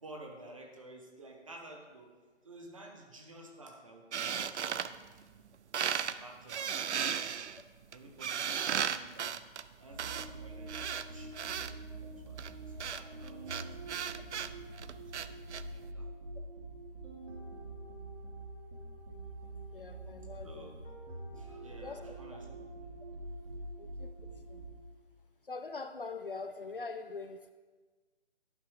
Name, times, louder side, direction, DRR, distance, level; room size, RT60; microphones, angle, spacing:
voice 1, 0.0-2.2 2.4-5.3 6.0-7.4 7.9-9.4 9.8-14.3 14.9-16.1 20.4-20.8 21.3-22.7, right 2 dB, 30° right, 2 dB, 0.9 m, -53 dB
sound 1, 4.1-5.5 5.7-6.2 6.5-11.7 12.4-15.6, right 8 dB, 70° right, 0.5 m, -35 dB
sound 2, 9.9-25.1, right 2 dB, 90° right, 2.3 m, -45 dB
voice 2, 19.7-20.7 21.8-22.2 23.8-24.1 24.5-24.6 25.5-27.5, left 4 dB, 50° left, 8 dB, 0.4 m, -43 dB
11.5 x 4.7 x 4.7 m, 1.3 s
hypercardioid pair, 170°, 36 cm